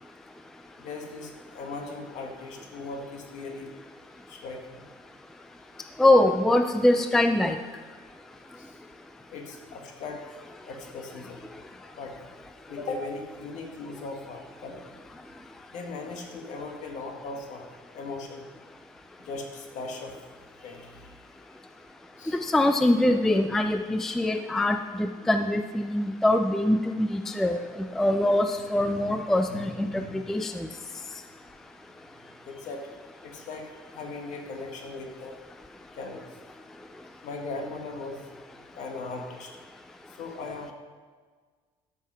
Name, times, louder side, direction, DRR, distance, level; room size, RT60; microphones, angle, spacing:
voice 1, 0.8-3.7 4.3-4.8 8.6-8.8 9.3-10.2 10.6-11.5 11.8-12.3 12.7-14.9 15.7-17.7 17.9-18.4 19.2-20.1 20.6-21.1 22.2-22.4 27.9-28.0 28.7-29.1 29.5-30.1 32.5-32.9 33.2-33.7 33.9-35.4 35.9-36.3 37.2-38.2 38.7-39.5 40.2-40.7, left 3 dB, 60° left, 3 dB, 1.7 m, -38 dB
voice 2, 6.0-7.6 22.3-27.6 28.0-30.7, left 1 dB, 5° left, 7 dB, 0.3 m, -23 dB
13.0 x 5.7 x 5.6 m, 1.5 s
cardioid pair, 165°, 14 cm